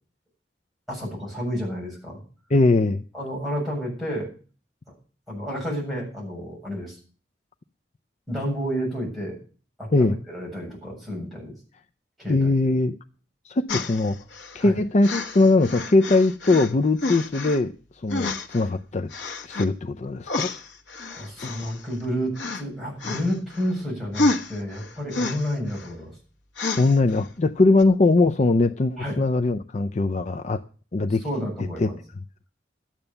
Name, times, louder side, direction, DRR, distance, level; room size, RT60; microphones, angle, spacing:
voice 1, 0.9-2.2 3.1-4.3 4.9-5.0 5.3-7.0 8.3-9.4 9.8-11.5 12.2-12.5 14.6-14.8 21.1-26.1 29.0-29.2 31.2-32.0, equal, ahead, 7.7 m, -30 dB
voice 2, 2.5-3.0 9.9-10.2 12.3-13.0 13.4-14.2 14.5-17.7 18.0-19.1 19.4-20.5 21.4-21.7 26.8-30.6 30.9-31.2 31.8-31.9, left 2 dB, 40° left, 0.5 m, -21 dB
sound 1, 13.7-14.6 15.0-16.7 17.0-17.6 18.1-18.7 19.1-19.7 20.3-22.1 22.4-22.6 23.0-23.7 24.1-25.9 26.6-27.2 27.8-27.9, left 3 dB, 90° left, 1.3 m, -29 dB
12.5 x 9.0 x 6.8 m
head